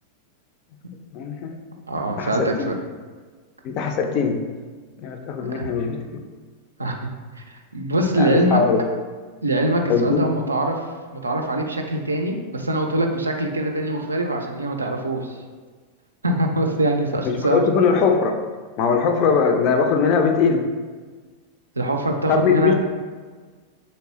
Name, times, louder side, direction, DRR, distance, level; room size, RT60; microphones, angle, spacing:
voice 1, 1.1-1.6 2.2-2.7 3.6-4.4 5.0-6.2 8.2-8.8 9.9-10.4 17.3-18.4 18.8-20.6 22.3-22.7, left 5 dB, 40° left, 5 dB, 0.4 m, -20 dB
voice 2, 1.9-2.8 5.5-5.7 6.8-7.0 7.4-8.6 9.4-10.8 11.1-15.4 16.2-17.6 21.8-22.7, right 1 dB, 80° right, 3 dB, 0.4 m, -23 dB
3.2 x 2.9 x 3.0 m, 1.5 s
figure-of-eight pair, 90°, 0 cm